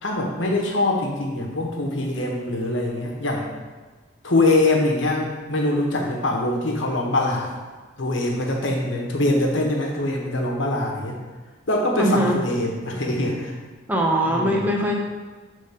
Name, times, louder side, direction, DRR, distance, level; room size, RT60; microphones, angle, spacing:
voice 1, 0.0-3.5 4.2-7.5 8.0-11.2 11.7-13.5 14.2-14.8, left 2 dB, 80° left, 0 dB, 1.2 m, -23 dB
voice 2, 12.0-12.4 13.9-15.0, right 1 dB, 10° right, -1 dB, 0.7 m, -21 dB
7.0 x 3.7 x 5.2 m, 1.4 s
head